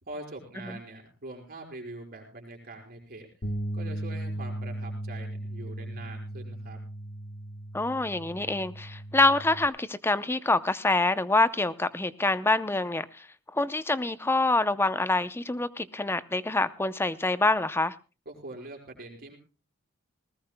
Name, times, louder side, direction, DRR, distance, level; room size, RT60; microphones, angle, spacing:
voice 1, 0.0-3.3 3.7-6.8 18.3-19.4, right 2 dB, 45° right, 2 dB, 5.3 m, -43 dB
sound 1, 3.4-9.7, right 1 dB, 50° left, 1.1 m, -37 dB
voice 2, 7.7-13.3 13.5-17.9, left 2 dB, 10° left, 13 dB, 0.6 m, -26 dB
20.0 x 19.5 x 2.2 m, 0.32 s
head